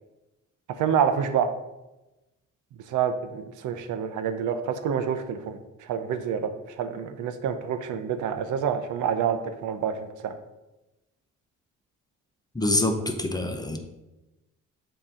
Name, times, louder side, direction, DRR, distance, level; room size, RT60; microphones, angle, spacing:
voice 1, 0.7-1.5 2.9-10.3, right 7 dB, 80° right, 8 dB, 0.7 m, -28 dB
voice 2, 12.5-13.8, left 2 dB, 15° left, 5 dB, 0.7 m, -25 dB
7.2 x 3.0 x 4.9 m, 1.0 s
cardioid pair, 90°, 30 cm